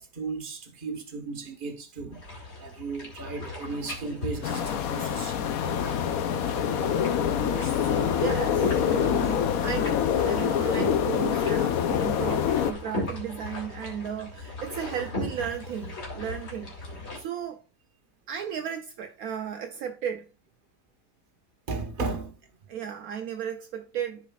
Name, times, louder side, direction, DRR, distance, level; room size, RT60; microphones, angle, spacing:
voice 1, 0.0-2.2 2.6-5.4 10.2-10.3 11.9-12.1 16.9-17.1 21.7-22.3, right 3 dB, 35° right, 1.4 m, -35 dB
sound 1, 2.1-17.2, left 2 dB, 45° left, 2.4 m, -38 dB
sound 2, 4.4-12.7, left 8 dB, 70° left, 1.1 m, -26 dB
voice 2, 7.4-17.6 18.3-20.3 22.7-24.3, right 8 dB, 70° right, 1.1 m, -35 dB
14.0 x 5.0 x 2.4 m
omnidirectional pair, 1.7 m